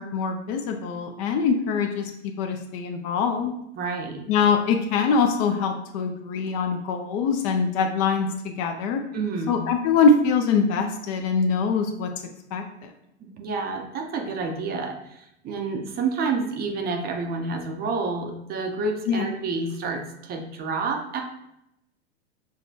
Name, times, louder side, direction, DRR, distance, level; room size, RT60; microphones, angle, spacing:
voice 1, 0.0-2.1 2.4-3.5 4.3-9.0 9.5-12.1 12.5-12.6 19.1-19.3, left 5 dB, 40° left, 5 dB, 0.5 m, -23 dB
voice 2, 3.8-4.2 9.1-9.6 13.2-21.2, right 4 dB, 30° right, 3 dB, 0.6 m, -29 dB
6.1 x 2.2 x 2.7 m, 0.81 s
hypercardioid pair, 110°, 35 cm